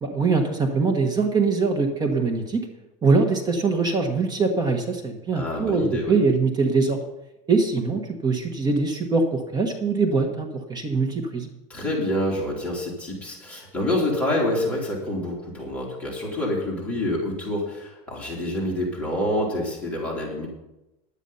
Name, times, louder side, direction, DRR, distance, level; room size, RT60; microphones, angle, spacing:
voice 1, 0.0-2.6 3.0-7.0 7.5-11.5, right 4 dB, 20° right, 4 dB, 1.3 m, -23 dB
voice 2, 5.3-6.1 11.7-20.5, left 1 dB, 5° left, -5 dB, 3.4 m, -27 dB
11.0 x 9.1 x 5.6 m, 0.94 s
supercardioid pair, 145°, 19 cm